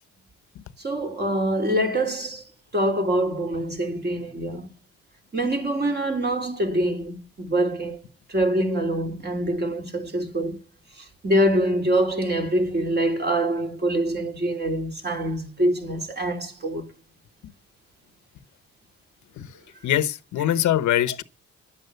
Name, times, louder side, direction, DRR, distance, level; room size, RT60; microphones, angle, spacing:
voice 1, 0.8-2.5 2.7-4.7 5.3-8.0 8.3-10.6 11.0-16.9, right 1 dB, 35° right, 3.3 m, -25 dB
voice 2, 19.8-21.2, left 11 dB, 75° left, 1.0 m, -22 dB
11.5 x 8.1 x 6.9 m
cardioid pair, 90°, 30 cm